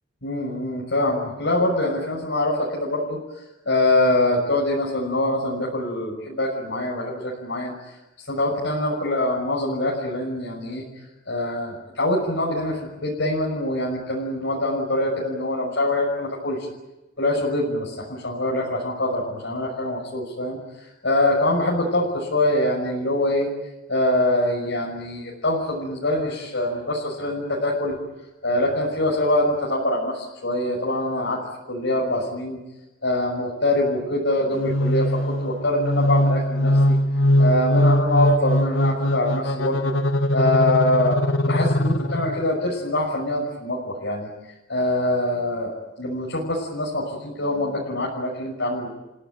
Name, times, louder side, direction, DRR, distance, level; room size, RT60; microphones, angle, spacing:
voice 1, 0.2-3.2 3.7-7.7 8.3-10.8 11.3-16.6 17.2-23.5 23.9-27.9 28.4-31.4 31.7-32.6 33.0-36.9 37.4-39.9 40.3-44.3 44.7-45.7 46.0-48.9, left 1 dB, 65° left, -3 dB, 6.1 m, -24 dB
sound 1, 34.6-42.5, equal, 85° left, 1.6 m, -21 dB
29.5 x 17.0 x 9.2 m, 1.0 s
head